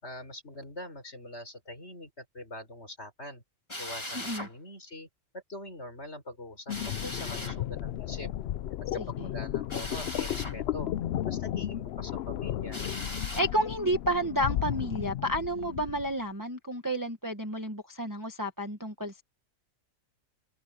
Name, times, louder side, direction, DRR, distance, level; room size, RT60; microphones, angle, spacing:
voice 1, 0.0-3.4 3.8-5.1 5.3-8.3 8.9-10.9 11.2-12.8, left 1 dB, 45° left, 6.3 m, -43 dB
Drill, 3.7-4.5 6.7-7.6 9.7-10.6 12.7-13.5, left 1 dB, 15° left, 3.2 m, -39 dB
voice 2, 4.1-4.5 9.2-9.3 13.3-19.2, right 1 dB, 15° right, 1.6 m, -31 dB
sound 1, 6.7-16.1, left 12 dB, 90° left, 0.5 m, -34 dB
open air
omnidirectional pair, 1.6 m